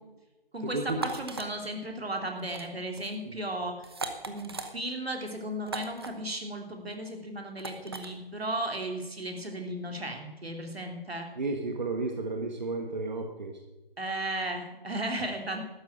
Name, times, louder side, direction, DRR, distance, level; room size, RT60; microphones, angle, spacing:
voice 1, 0.5-3.8 4.3-11.3 14.0-15.6, right 1 dB, 85° right, 3 dB, 3.3 m, -35 dB
sound 1, 0.9-1.5 2.4-2.7 2.9-3.1 3.8-4.7 5.7-6.1 7.6-8.1, right 3 dB, 25° right, 0.9 m, -37 dB
voice 2, 11.4-13.5, right 3 dB, 50° right, 4 dB, 1.6 m, -32 dB
12.5 x 9.1 x 8.8 m, 1.1 s
figure-of-eight pair, 165°, 30 cm